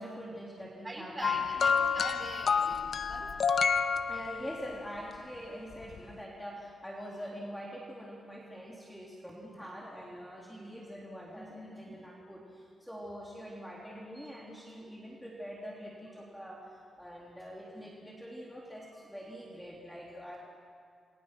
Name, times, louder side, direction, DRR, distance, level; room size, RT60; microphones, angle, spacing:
voice 1, 0.0-1.4 4.1-20.4, equal, ahead, -4 dB, 3.3 m, -44 dB
voice 2, 0.8-3.3, right 1 dB, 20° right, 1 dB, 4.8 m, -42 dB
sound 1, 1.2-4.8 5.8-6.0, left 6 dB, 55° left, 0.9 m, -29 dB
28.5 x 22.5 x 5.9 m, 2.3 s
cardioid pair, 120°, 0 cm